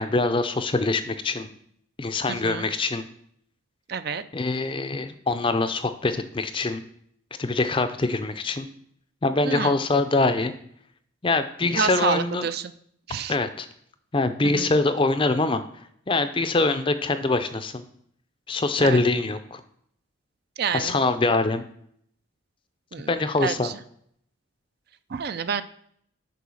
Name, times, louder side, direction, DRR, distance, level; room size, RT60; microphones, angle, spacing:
voice 1, 0.0-1.5 2.0-3.1 4.3-6.8 7.4-8.7 9.2-10.5 11.2-12.4 13.3-13.7 14.1-15.6 16.1-17.8 18.5-19.6 20.7-21.6 23.1-23.7, left 3 dB, 25° left, 10 dB, 0.5 m, -24 dB
voice 2, 2.3-2.7 3.9-4.2 9.4-9.8 11.7-12.7 13.1-13.4 14.4-14.8 18.8-19.0 20.6-21.0 22.9-23.1 23.4-23.7 25.1-25.6, right 6 dB, 50° right, 12 dB, 0.4 m, -28 dB
6.8 x 4.8 x 6.3 m, 0.66 s
head